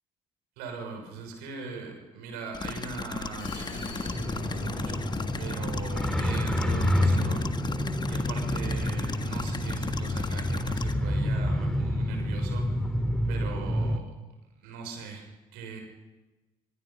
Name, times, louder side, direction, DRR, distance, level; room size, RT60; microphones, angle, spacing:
voice 1, 0.6-5.1 5.4-7.6 8.1-12.8 13.3-14.1 14.6-15.2 15.5-15.8, right 5 dB, 70° right, 3 dB, 6.4 m, -40 dB
sound 1, 2.5-10.9, left 4 dB, 25° left, 1.7 m, -36 dB
Vehicle, 3.4-10.6, left 3 dB, 75° left, 5.7 m, -43 dB
sound 2, 4.1-14.0, left 1 dB, 5° left, 3.0 m, -28 dB
24.0 x 24.0 x 5.5 m, 1.1 s
figure-of-eight pair, 50°, 17 cm